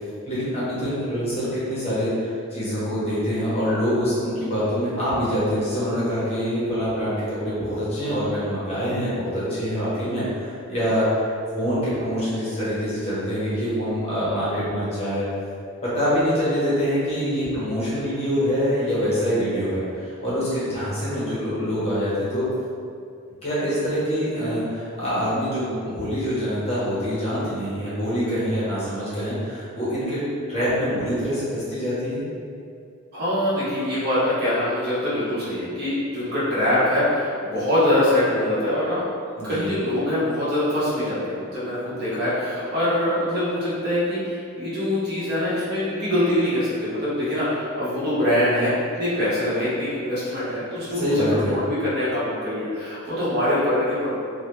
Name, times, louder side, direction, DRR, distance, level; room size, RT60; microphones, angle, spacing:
voice 1, 0.3-15.2 15.8-22.5 23.4-30.2 30.5-32.2 39.4-39.6 51.0-51.6, equal, 30° left, -10 dB, 0.7 m, -25 dB
voice 2, 33.1-39.0 39.4-54.1, left 1 dB, 45° right, -10 dB, 0.8 m, -24 dB
2.2 x 2.1 x 2.9 m, 2.4 s
head